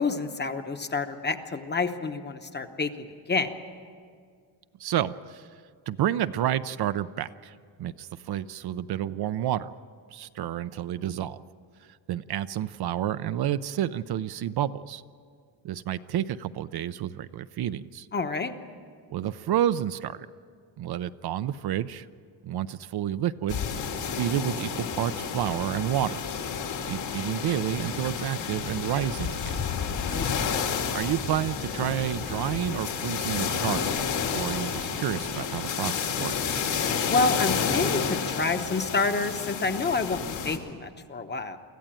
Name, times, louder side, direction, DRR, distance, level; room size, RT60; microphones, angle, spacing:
voice 1, 0.0-3.5 18.1-18.5 30.1-30.5 37.1-41.6, left 3 dB, 25° left, 7 dB, 0.9 m, -28 dB
voice 2, 4.8-5.5 5.9-9.7 10.1-11.4 12.1-15.0 15.6-18.1 19.1-20.3 20.8-22.1 22.4-23.6 24.2-26.2 26.8-29.6 30.9-33.9 34.3-36.6, right 11 dB, 60° right, 13 dB, 0.6 m, -30 dB
sound 1, 23.5-40.6, left 6 dB, 70° left, 2.5 m, -30 dB
25.0 x 15.0 x 9.0 m, 2.1 s
cardioid pair, 165°, 45 cm